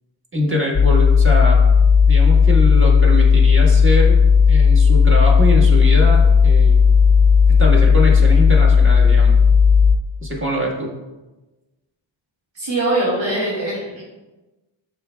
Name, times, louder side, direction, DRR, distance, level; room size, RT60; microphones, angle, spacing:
voice 1, 0.3-1.6 2.0-4.2 4.4-6.8 7.6-9.4 10.2-10.9, equal, 25° right, -2 dB, 1.4 m, -23 dB
sound 1, 0.7-10.0, left 6 dB, 30° left, 0.4 m, -13 dB
voice 2, 12.5-14.0, right 2 dB, 65° right, -8 dB, 1.9 m, -22 dB
11.0 x 4.1 x 2.2 m, 1.1 s
wide cardioid pair, 100°, 48 cm